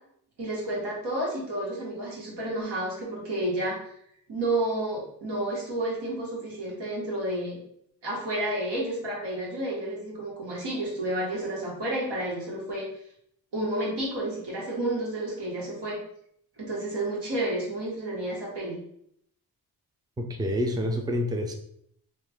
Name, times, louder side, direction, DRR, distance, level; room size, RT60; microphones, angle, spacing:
voice 1, 0.4-3.9 4.3-7.6 8.0-12.9 13.5-16.0 16.6-18.8, right 1 dB, 85° right, -4 dB, 1.5 m, -31 dB
voice 2, 20.2-21.5, equal, 10° right, 4 dB, 0.3 m, -28 dB
3.2 x 2.4 x 3.4 m, 0.70 s
wide cardioid pair, 110°, 40 cm